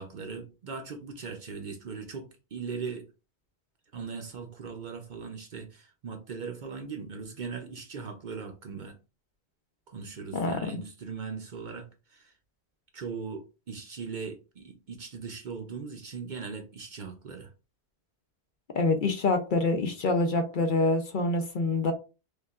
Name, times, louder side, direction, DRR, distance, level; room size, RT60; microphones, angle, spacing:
voice 1, 0.0-3.1 3.9-9.0 9.9-12.3 12.9-17.5, right 5 dB, 50° right, 0.7 m, -39 dB
voice 2, 10.3-10.7 18.7-21.9, left 3 dB, 55° left, 0.7 m, -26 dB
5.2 x 2.3 x 2.3 m
omnidirectional pair, 1.1 m